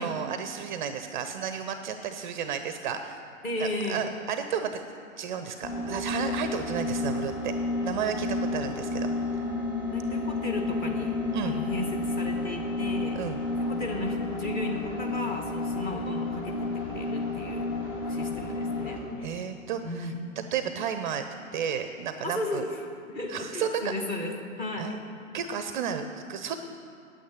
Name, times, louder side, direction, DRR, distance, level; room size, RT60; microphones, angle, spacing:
voice 1, 0.0-3.2 3.6-4.8 5.2-7.5 7.8-9.4 11.3-11.6 13.1-13.4 19.2-20.1 20.5-21.3 21.5-22.7 23.3-23.9 24.8-25.0 25.3-26.6, right 8 dB, 35° right, 8 dB, 0.6 m, -32 dB
voice 2, 3.4-4.0 8.4-8.6 9.9-11.1 11.4-13.2 13.6-17.7 18.0-19.5 19.8-20.2 22.2-22.7 23.1-24.9, left 2 dB, 20° left, 2 dB, 1.6 m, -35 dB
sound 1, 5.6-19.2, left 2 dB, 40° left, 3.0 m, -31 dB
9.3 x 8.6 x 9.0 m, 2.4 s
figure-of-eight pair, 110°, 41 cm